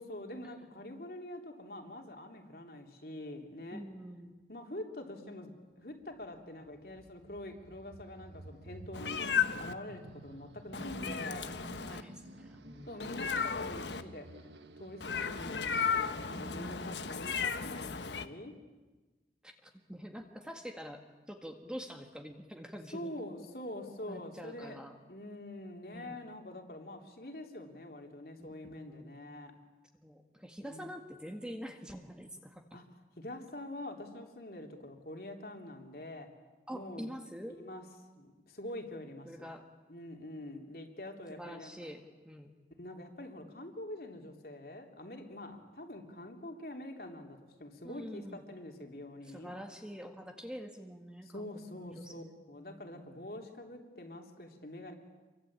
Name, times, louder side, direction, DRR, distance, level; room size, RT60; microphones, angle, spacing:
voice 1, 0.0-3.8 4.5-9.3 9.6-11.5 12.9-14.3 14.8-18.6 22.9-24.8 25.1-29.5 30.6-30.9 32.7-32.8 33.2-36.3 36.7-37.1 37.6-37.8 38.2-39.5 39.9-41.9 42.8-49.5 51.2-54.9, left 1 dB, 55° left, 3 dB, 3.3 m, -45 dB
voice 2, 3.7-4.4 10.7-11.5 11.8-13.1 16.3-17.1 19.4-23.1 24.0-25.0 25.9-26.2 28.4-29.0 30.0-32.8 36.7-37.6 39.3-39.7 41.3-42.5 47.8-48.5 49.2-53.1, equal, 5° right, 4 dB, 1.7 m, -46 dB
sound 1, 5.9-17.2, right 1 dB, 85° right, 1.4 m, -53 dB
Meow, 8.9-9.7 10.7-12.0 13.0-14.0 15.0-18.3, left 6 dB, 85° left, 1.3 m, -34 dB
28.0 x 23.5 x 8.8 m, 1.2 s
head